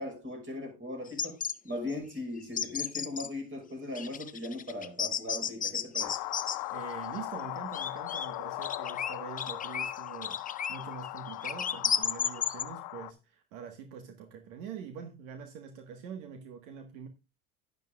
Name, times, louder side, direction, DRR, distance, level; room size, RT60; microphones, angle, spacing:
voice 1, 0.0-1.4 1.6-6.2, left 2 dB, 30° right, 5.9 m, -38 dB
sound 1, 1.1-1.6 1.9-2.0 2.4-3.3 4.0-6.6 7.2-8.3 8.5-12.6, left 7 dB, 20° left, 0.8 m, -33 dB
sound 2, 6.0-13.1, left 19 dB, 55° left, 1.0 m, -39 dB
voice 2, 6.7-17.1, right 7 dB, 70° right, 1.6 m, -44 dB
11.0 x 11.0 x 2.4 m
hypercardioid pair, 90°, 41 cm